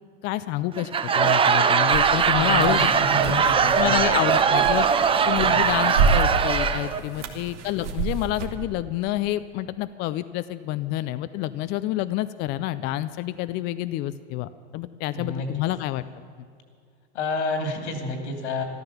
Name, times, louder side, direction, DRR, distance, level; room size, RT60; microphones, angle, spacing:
voice 1, 0.2-2.9 3.2-3.5 3.7-4.9 5.2-16.0, left 15 dB, 30° left, 13 dB, 0.4 m, -28 dB
Laughter / Crowd, 0.8-7.0, right 6 dB, 15° right, 0.6 m, -21 dB
sound 1, 1.9-8.6, right 4 dB, 85° right, 1.8 m, -29 dB
voice 2, 2.3-3.9 5.5-5.6 7.2-7.4 15.1-15.5 17.1-18.6, left 2 dB, 75° left, 4 dB, 3.0 m, -30 dB
13.5 x 12.5 x 7.0 m, 2.2 s
hypercardioid pair, 115°, 35 cm